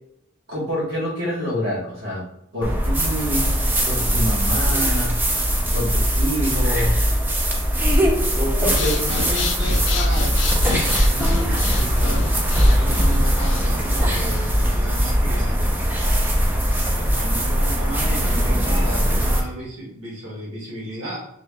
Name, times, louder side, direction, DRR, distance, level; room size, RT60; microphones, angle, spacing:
voice 1, 0.5-2.3 2.5-3.5 3.8-5.2 5.7-7.0 8.3-9.0, equal, 70° right, -6 dB, 1.2 m, -26 dB
sound 1, 2.6-19.4, equal, 10° right, 0.4 m, -20 dB
Breathing, 8.6-14.7, left 3 dB, 65° left, 0.4 m, -29 dB
voice 2, 8.6-10.4 10.8-15.8 16.9-21.3, right 1 dB, 90° right, -4 dB, 1.3 m, -33 dB
2.8 x 2.8 x 3.3 m, 0.75 s
head